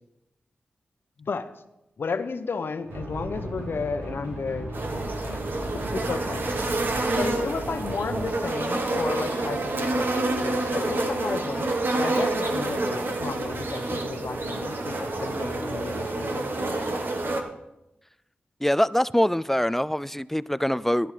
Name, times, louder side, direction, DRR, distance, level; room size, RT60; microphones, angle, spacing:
voice 1, 1.2-1.5 2.0-4.8 5.3-5.4 5.9-6.5 7.2-16.5, left 5 dB, 65° left, 0.8 m, -33 dB
sound 1, 2.8-8.3, right 1 dB, 85° right, 4.6 m, -36 dB
sound 2, 4.7-17.4, right 2 dB, 60° right, 1.3 m, -28 dB
voice 2, 18.6-21.1, equal, 5° left, 0.3 m, -24 dB
14.0 x 10.5 x 3.4 m
cardioid pair, 50°, 4 cm